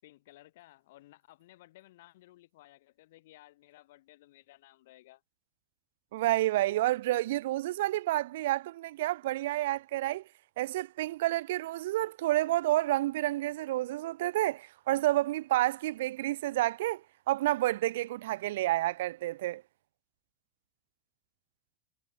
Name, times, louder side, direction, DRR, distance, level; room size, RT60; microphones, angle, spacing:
voice 1, 0.0-5.2, left 17 dB, 70° left, 6.6 m, -57 dB
voice 2, 6.1-10.2 10.6-17.0 17.3-19.6, right 16 dB, 75° right, 0.8 m, -29 dB
supercardioid pair, 160°, 0 cm